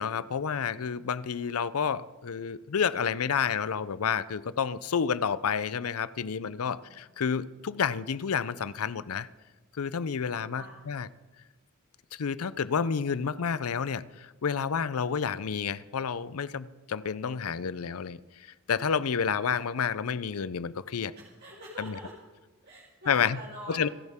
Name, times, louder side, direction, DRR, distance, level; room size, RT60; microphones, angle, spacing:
voice 1, 0.0-9.3 9.8-11.1 12.1-21.1 21.8-22.0 23.1-23.4 23.7-23.9, left 6 dB, 80° left, 0.5 m, -30 dB
voice 2, 6.6-7.0 10.5-10.8 21.2-22.1 22.6-23.9, right 1 dB, 50° right, 2.3 m, -45 dB
28.0 x 11.0 x 3.6 m
head